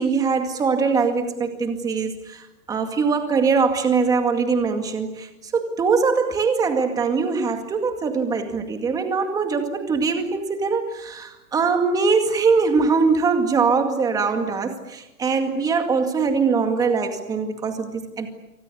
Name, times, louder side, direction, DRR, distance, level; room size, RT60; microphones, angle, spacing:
voice 1, 0.0-18.3, right 5 dB, 10° right, 6 dB, 2.1 m, -22 dB
27.0 x 24.5 x 8.3 m, 0.93 s
hypercardioid pair, 165°, 45 cm